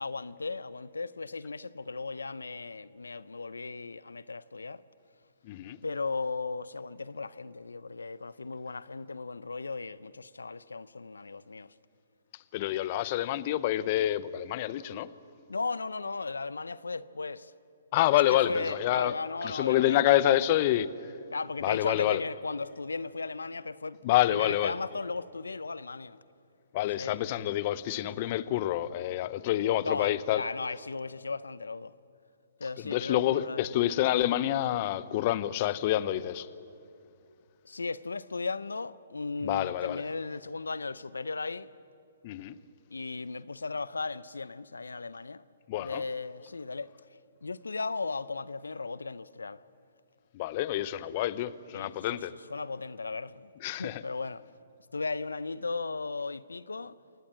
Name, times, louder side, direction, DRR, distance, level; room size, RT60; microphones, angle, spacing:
voice 1, 0.0-4.8 5.8-11.7 15.5-17.5 18.1-20.0 21.3-24.0 24.3-26.2 27.0-27.2 29.8-31.9 32.6-33.7 37.6-41.7 42.9-45.4 45.8-46.9 47.4-49.6 51.7-52.2 52.5-53.5 53.8-54.4 54.9-57.0, left 4 dB, 85° left, 0.6 m, -36 dB
voice 2, 5.4-5.8 12.5-15.1 17.9-19.1 19.4-21.1 21.6-22.2 24.0-24.7 26.7-30.4 32.8-36.5 39.4-40.0 42.2-42.6 45.7-46.0 50.3-52.3 53.6-54.0, left 13 dB, 40° left, 0.8 m, -27 dB
28.0 x 17.0 x 7.5 m
hypercardioid pair, 130°, 0 cm